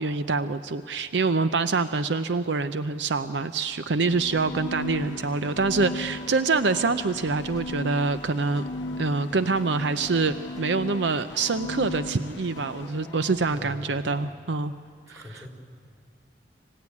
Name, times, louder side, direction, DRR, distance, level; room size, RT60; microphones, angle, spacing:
voice 1, 0.0-8.6 9.0-14.7 15.1-15.5, right 4 dB, 75° right, 11 dB, 0.6 m, -26 dB
sound 1, 3.9-13.0, left 1 dB, 90° left, 0.6 m, -37 dB
sound 2, 4.1-14.3, left 2 dB, 20° left, 0.6 m, -47 dB
voice 2, 13.5-13.9 15.1-15.5, left 1 dB, 20° right, 1 dB, 3.8 m, -42 dB
26.5 x 15.5 x 9.7 m, 2.1 s
head